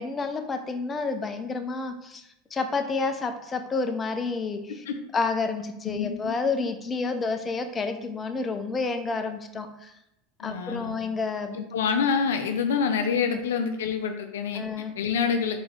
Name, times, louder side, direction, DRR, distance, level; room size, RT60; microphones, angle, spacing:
voice 1, 0.0-2.2 2.5-4.8 5.1-9.9 10.4-11.6 13.3-13.4 14.5-14.9, left 4 dB, 25° left, 6 dB, 0.5 m, -29 dB
voice 2, 5.8-6.3 10.4-11.0 11.5-14.6 15.0-15.6, left 6 dB, 85° left, 6 dB, 0.5 m, -27 dB
4.0 x 3.2 x 3.7 m, 0.83 s
hypercardioid pair, 100°, 0 cm